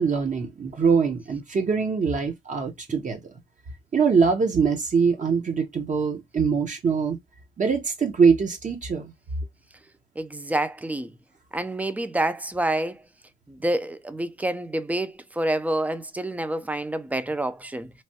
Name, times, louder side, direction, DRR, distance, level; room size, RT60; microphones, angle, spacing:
voice 1, 0.0-3.2 3.9-7.2 7.6-9.1, right 5 dB, 40° right, 0.8 m, -23 dB
voice 2, 10.2-11.1 11.5-13.0 13.5-17.9, right 1 dB, 10° right, 0.4 m, -28 dB
3.1 x 2.2 x 2.7 m
cardioid pair, 90°, 20 cm